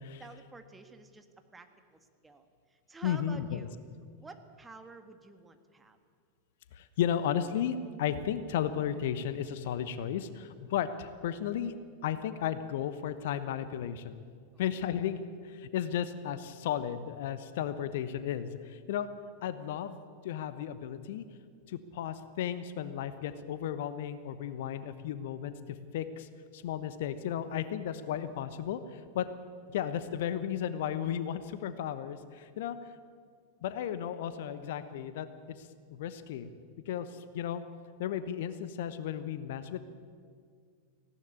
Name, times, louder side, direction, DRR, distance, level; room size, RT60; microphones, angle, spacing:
voice 1, 0.2-3.8 4.2-6.0 14.5-14.9, right 3 dB, 10° right, 7 dB, 1.6 m, -51 dB
voice 2, 3.0-3.6 6.7-11.8 12.0-14.2 14.6-19.1 19.4-20.0 20.2-21.2 21.7-26.3 26.5-29.3 29.7-32.8 33.6-35.3 35.6-36.5 36.9-37.6 38.0-39.8, left 9 dB, 55° left, 12 dB, 1.0 m, -34 dB
18.5 x 16.5 x 8.8 m, 2.1 s
figure-of-eight pair, 90°, 0 cm